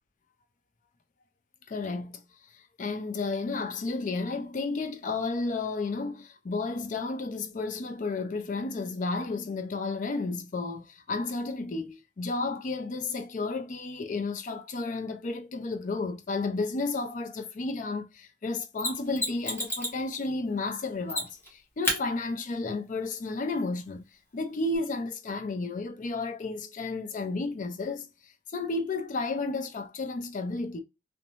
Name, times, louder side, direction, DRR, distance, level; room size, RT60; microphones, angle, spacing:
voice 1, 1.7-2.2 2.8-24.0 24.3-28.1 28.5-30.8, left 3 dB, 45° left, 0.5 m, -32 dB
Mechanisms, 18.8-20.0 21.1-21.5 21.8-22.0 24.7-24.8, left 1 dB, 15° left, 0.9 m, -30 dB
2.7 x 2.1 x 2.9 m
head